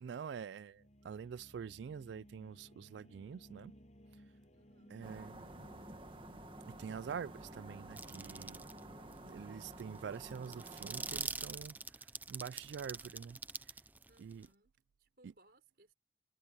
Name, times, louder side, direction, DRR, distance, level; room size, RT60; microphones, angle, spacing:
voice 1, 0.0-3.7 4.9-5.7 6.7-8.6 9.2-11.8 12.3-13.7 14.2-14.5 15.2-15.3, right 7 dB, 75° right, 0.3 m, -46 dB
sound 1, 0.7-12.2, equal, 40° left, 7.6 m, -61 dB
voice 2, 4.5-5.0 14.1-14.7 15.0-15.9, right 2 dB, 55° right, 6.1 m, -68 dB
sound 2, 5.0-11.2, right 1 dB, 30° right, 1.9 m, -51 dB
sound 3, 8.0-8.8 9.1-9.2 9.6-14.5, right 3 dB, 10° right, 0.5 m, -44 dB
head